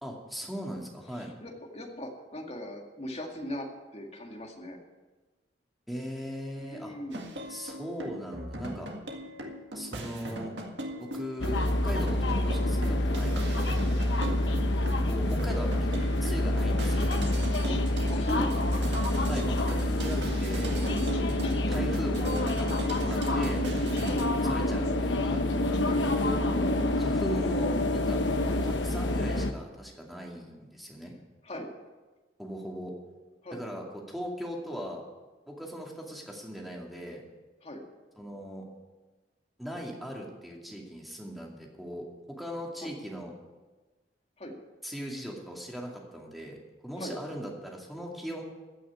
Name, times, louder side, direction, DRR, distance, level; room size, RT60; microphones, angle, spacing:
voice 1, 0.0-1.3 5.9-6.9 7.5-8.9 9.7-10.5 11.0-13.8 15.0-17.1 19.3-20.8 21.1-23.6 24.4-28.2 28.6-31.1 32.4-32.9 33.5-35.0 35.5-37.2 38.1-38.7 39.6-43.3 44.8-48.4, equal, ahead, -1 dB, 2.3 m, -39 dB
voice 2, 1.1-3.7 3.9-4.8 6.7-7.4 14.2-14.4 17.5-17.8 18.1-18.8 20.8-21.0 21.4-21.6 24.0-24.2 25.9-26.1 28.4-28.6 31.4-31.7 33.4-33.6 37.6-37.8 42.8-42.9 44.4-44.6 47.0-47.1, equal, 35° left, 2 dB, 2.1 m, -39 dB
sound 1, 7.1-24.2, right 1 dB, 80° right, 1.9 m, -40 dB
sound 2, 11.4-29.5, left 1 dB, 90° left, 1.0 m, -27 dB
15.0 x 6.3 x 9.4 m, 1.2 s
head